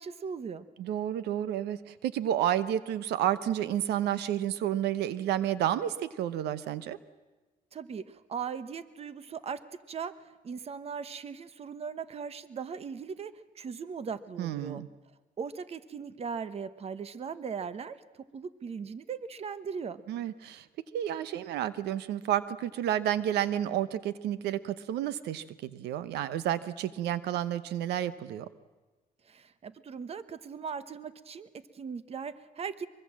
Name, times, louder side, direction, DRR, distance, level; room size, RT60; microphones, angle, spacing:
voice 1, 0.0-0.7 7.7-9.6 9.9-14.8 15.4-20.0 29.2-32.9, right 6 dB, 40° right, 14 dB, 1.1 m, -39 dB
voice 2, 0.8-7.0 14.4-14.9 20.1-20.7 20.9-28.5, right 11 dB, 85° right, 15 dB, 0.9 m, -30 dB
24.0 x 22.5 x 7.5 m, 1.3 s
cardioid pair, 115°, 17 cm